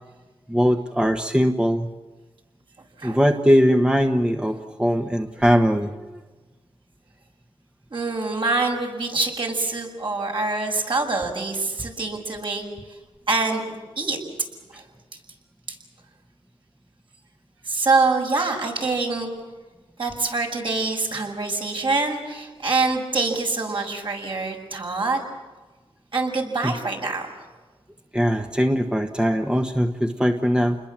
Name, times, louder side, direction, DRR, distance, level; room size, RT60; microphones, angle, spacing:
voice 1, 0.5-1.9 3.0-6.2 26.6-26.7 28.1-30.8, equal, 10° right, 5 dB, 1.3 m, -20 dB
voice 2, 7.9-12.6 13.3-13.6 14.0-14.2 14.7-14.8 17.7-19.3 20.0-25.2 26.1-27.3, right 3 dB, 55° right, 1 dB, 6.4 m, -25 dB
29.0 x 21.0 x 7.5 m, 1.3 s
cardioid pair, 75°, 10 cm